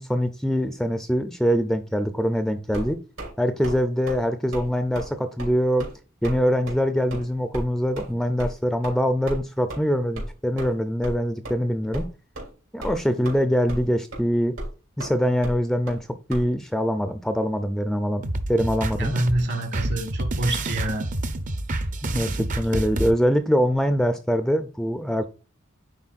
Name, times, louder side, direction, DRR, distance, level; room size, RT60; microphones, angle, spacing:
voice 1, 0.0-3.0 3.4-5.9 6.2-12.1 12.7-14.5 15.0-16.0 16.3-19.1 22.0-25.3, equal, ahead, 0.4 m, -23 dB
sound 1, 2.7-3.3 3.6-3.8 4.1-4.2 4.5-4.7 5.0-5.1 5.4-5.5 5.8-5.9 6.2-6.4 6.7-6.8 7.1-7.2 7.5-7.6 8.0-8.1 8.4-8.5 8.8-9.0 9.3-9.4 9.7-9.8 10.2-10.3 10.6-10.7 11.0-11.2 11.4-11.5 11.9-12.1 12.4-12.5 12.8-13.4 13.7-13.9 14.1-14.2 14.6-14.7 15.0-15.1 15.4-15.6 15.9-16.0 16.3-16.4, right 1 dB, 85° right, 3.1 m, -33 dB
sound 2, 18.2-23.1, right 2 dB, 40° right, 0.6 m, -28 dB
voice 2, 19.0-21.1, right 1 dB, 60° right, 1.4 m, -26 dB
9.6 x 4.1 x 2.4 m
head